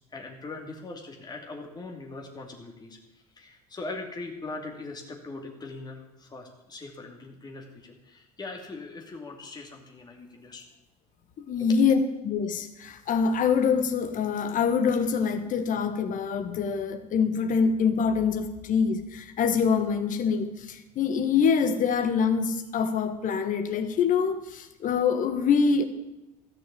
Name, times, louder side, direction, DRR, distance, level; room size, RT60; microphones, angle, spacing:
voice 1, 0.1-10.6 11.6-11.8, left 3 dB, 20° left, 1 dB, 2.5 m, -41 dB
voice 2, 11.4-25.8, left 6 dB, 40° left, 9 dB, 1.5 m, -25 dB
14.5 x 6.4 x 8.4 m, 0.92 s
figure-of-eight pair, 70°, 20 cm